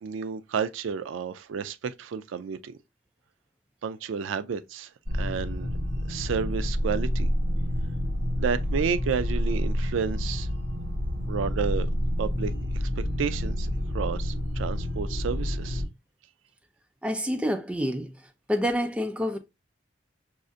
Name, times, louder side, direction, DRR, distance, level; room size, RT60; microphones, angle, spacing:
voice 1, 0.0-2.7 3.8-5.7 6.1-7.3 8.4-10.5 11.2-11.9 12.2-12.5 13.0-13.7 13.9-15.8, right 6 dB, 85° right, 0.4 m, -31 dB
sound 1, 5.1-15.8, equal, 65° right, 1.3 m, -28 dB
voice 2, 17.0-18.1 18.5-19.4, equal, 5° right, 0.4 m, -27 dB
6.1 x 2.4 x 2.5 m
head